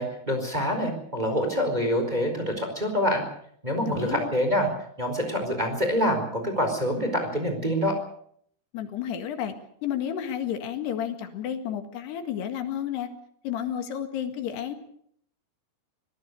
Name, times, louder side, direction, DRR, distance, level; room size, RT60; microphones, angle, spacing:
voice 1, 0.0-3.2 3.6-4.7 5.0-8.0, equal, 10° right, 4 dB, 4.3 m, -26 dB
voice 2, 3.9-4.3 8.7-9.5 9.8-13.1 13.4-14.8, left 9 dB, 90° left, 7 dB, 4.0 m, -31 dB
25.5 x 18.0 x 6.7 m, 0.66 s
omnidirectional pair, 4.6 m